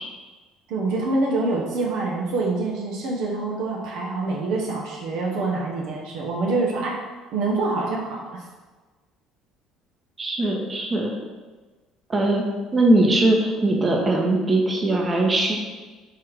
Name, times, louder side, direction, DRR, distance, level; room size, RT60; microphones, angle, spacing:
voice 1, 0.7-7.0 7.3-8.4, right 3 dB, 65° right, -2 dB, 0.7 m, -26 dB
voice 2, 10.2-11.1 12.1-12.4 12.7-15.6, right 2 dB, 30° right, 0 dB, 0.8 m, -20 dB
4.6 x 3.4 x 3.3 m, 1.3 s
figure-of-eight pair, 55°, 0 cm